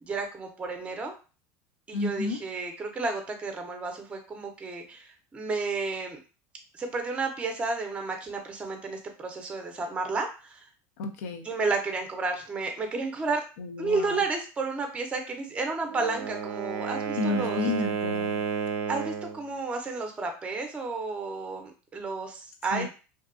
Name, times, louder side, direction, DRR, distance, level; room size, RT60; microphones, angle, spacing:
voice 1, 0.1-1.1 1.9-6.2 6.8-10.7 11.4-13.4 13.8-17.6 18.9-22.9, right 3 dB, 15° right, 4 dB, 0.5 m, -32 dB
voice 2, 1.9-2.4 11.0-11.5 13.6-14.2 17.2-18.4 22.7-22.9, left 3 dB, 90° left, 6 dB, 0.5 m, -31 dB
Wind instrument woodwind instrument, 15.8-19.4, right 6 dB, 80° right, 0.4 m, -31 dB
2.6 x 2.2 x 2.5 m, 0.33 s
supercardioid pair, 130°, 8 cm